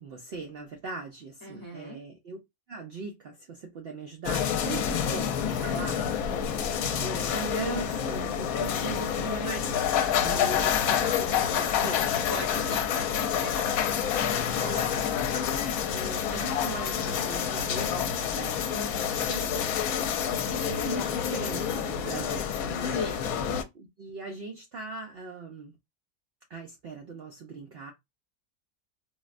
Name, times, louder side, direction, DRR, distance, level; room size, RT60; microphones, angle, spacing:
voice 1, 0.0-2.4 2.7-6.0 6.4-9.8 10.2-12.0 14.6-15.1 15.9-18.6 19.2-19.8 20.4-22.5 23.7-25.8 26.5-27.9, right 4 dB, 65° right, 0.6 m, -39 dB
voice 2, 1.4-2.0 12.3-13.6 18.7-19.3 22.8-23.2, left 2 dB, 20° left, 0.6 m, -38 dB
sound 1, 4.2-23.6, left 8 dB, 80° left, 1.0 m, -28 dB
4.0 x 2.1 x 2.4 m
omnidirectional pair, 1.5 m